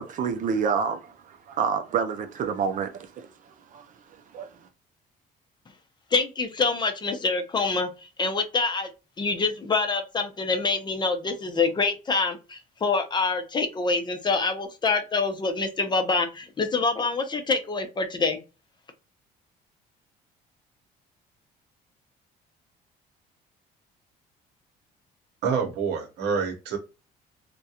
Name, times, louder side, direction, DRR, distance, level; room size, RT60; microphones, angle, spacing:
voice 1, 0.0-3.9 4.3-4.5, right 6 dB, 50° right, 0.5 m, -28 dB
voice 2, 6.1-7.9 8.2-8.9 9.2-18.4, left 4 dB, 25° left, 0.5 m, -26 dB
voice 3, 25.4-26.8, right 6 dB, 80° right, 0.8 m, -27 dB
2.3 x 2.2 x 2.7 m
cardioid pair, 110°, 17 cm